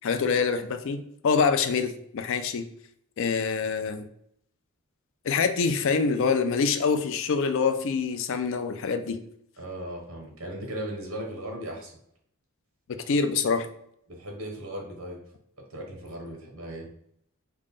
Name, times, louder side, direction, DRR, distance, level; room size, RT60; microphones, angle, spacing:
voice 1, 0.0-2.7 3.2-4.1 5.2-9.2 13.1-13.7, left 5 dB, 60° left, 9 dB, 0.4 m, -25 dB
voice 2, 9.6-11.9 14.1-15.2 15.7-16.9, right 1 dB, 65° right, 0 dB, 1.1 m, -37 dB
3.7 x 2.2 x 3.6 m, 0.70 s
head